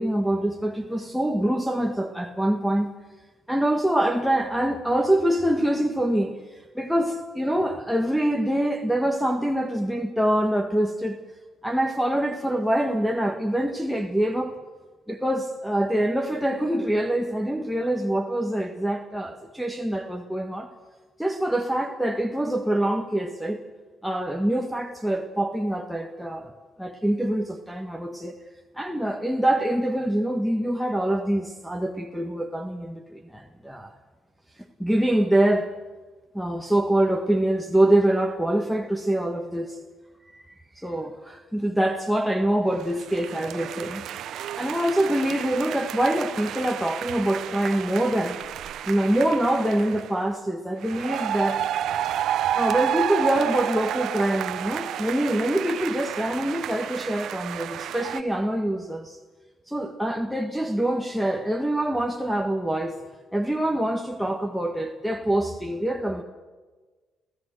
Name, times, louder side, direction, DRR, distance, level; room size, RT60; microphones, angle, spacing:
voice 1, 0.0-2.9 3.5-11.2 11.6-14.5 15.1-20.7 21.2-23.6 24.0-28.4 28.7-33.9 34.8-35.7 36.3-39.8 40.3-40.4 40.7-44.0 44.6-48.4 48.9-51.7 52.5-59.2 59.7-63.0 63.3-66.2, right 1 dB, ahead, 2 dB, 1.5 m, -25 dB
sound 1, 42.8-50.1 50.8-58.2, right 11 dB, 75° right, 0.7 m, -31 dB
30.0 x 15.0 x 7.8 m, 1.4 s
cardioid pair, 90°, 0 cm